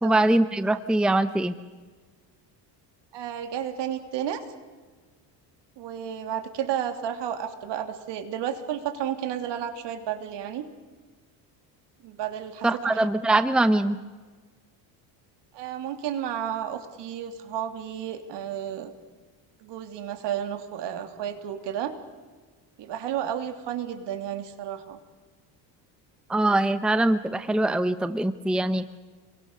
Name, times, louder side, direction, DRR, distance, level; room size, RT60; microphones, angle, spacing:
voice 1, 0.0-1.5 12.6-14.0 26.3-28.9, right 2 dB, ahead, 11 dB, 0.8 m, -23 dB
voice 2, 3.1-4.4 5.8-10.7 12.0-13.0 15.5-18.9 19.6-21.9 22.8-25.0, right 10 dB, 65° right, 7 dB, 3.1 m, -32 dB
30.0 x 23.0 x 6.8 m, 1.4 s
cardioid pair, 120°, 45 cm